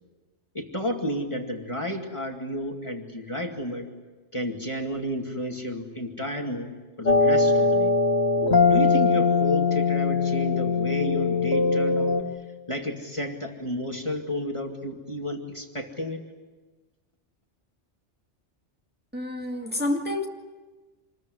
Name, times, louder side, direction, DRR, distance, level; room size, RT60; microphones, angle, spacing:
voice 1, 0.5-3.9 4.3-7.9 8.7-12.2 12.7-16.2, equal, 25° left, 2.3 m, -31 dB
sound 1, 7.1-12.2, left 4 dB, 65° left, 2.6 m, -21 dB
voice 2, 19.1-20.3, left 1 dB, 10° right, 2.2 m, -28 dB
27.5 x 21.5 x 9.6 m
omnidirectional pair, 1.2 m